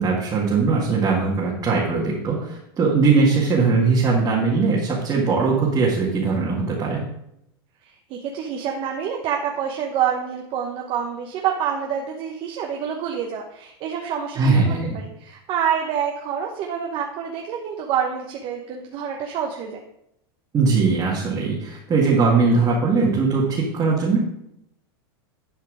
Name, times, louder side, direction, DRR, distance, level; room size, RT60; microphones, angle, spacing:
voice 1, 0.0-7.0 14.4-15.0 20.5-24.2, right 4 dB, 25° right, -5 dB, 1.9 m, -20 dB
voice 2, 7.8-19.8, right 8 dB, 45° right, 1 dB, 1.0 m, -27 dB
11.0 x 4.6 x 4.9 m, 0.80 s
supercardioid pair, 130°, 13 cm